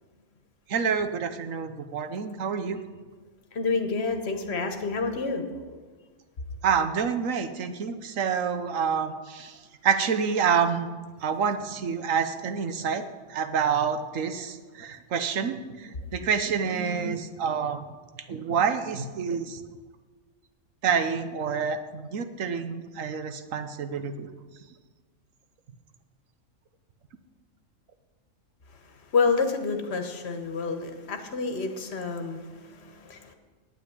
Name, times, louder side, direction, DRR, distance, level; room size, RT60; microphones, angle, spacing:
voice 1, 0.7-2.8 6.6-10.9 11.2-13.0 13.3-17.8 18.3-19.6 20.8-24.3, right 6 dB, 75° right, 10 dB, 1.3 m, -28 dB
voice 2, 3.5-5.5 29.1-33.3, left 4 dB, 50° left, 6 dB, 1.5 m, -28 dB
9.0 x 8.8 x 9.4 m, 1.4 s
omnidirectional pair, 1.4 m